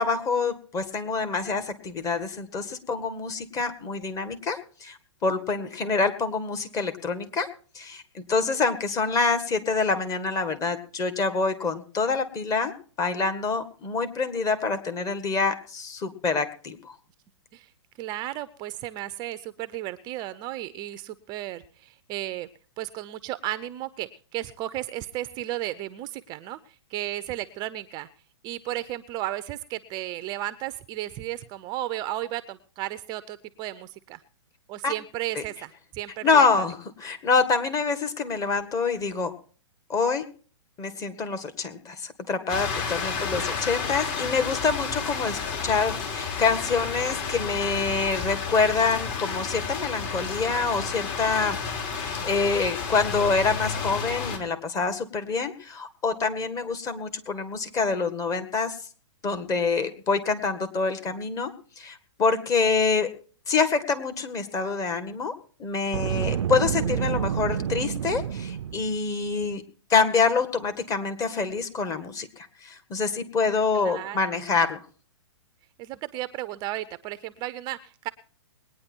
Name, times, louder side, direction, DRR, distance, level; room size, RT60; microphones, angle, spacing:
voice 1, 0.0-7.5 7.8-12.7 13.0-17.0 34.8-34.9 35.4-35.5 36.2-39.3 39.9-40.2 40.8-51.6 51.9-58.8 59.2-61.5 61.8-63.1 63.5-65.3 65.6-69.6 69.9-74.8, left 4 dB, 20° left, 8 dB, 1.7 m, -26 dB
voice 2, 18.0-22.5 22.8-28.1 28.4-34.2 34.7-36.5 43.2-43.5 73.7-74.5 75.8-78.1, right 14 dB, 30° right, 14 dB, 0.6 m, -34 dB
sound 1, 42.5-54.4, left 5 dB, 40° left, 3.3 m, -31 dB
Boom, 65.9-69.0, right 9 dB, 75° right, 0.5 m, -28 dB
20.5 x 9.6 x 4.5 m, 0.41 s
hypercardioid pair, 135°, 16 cm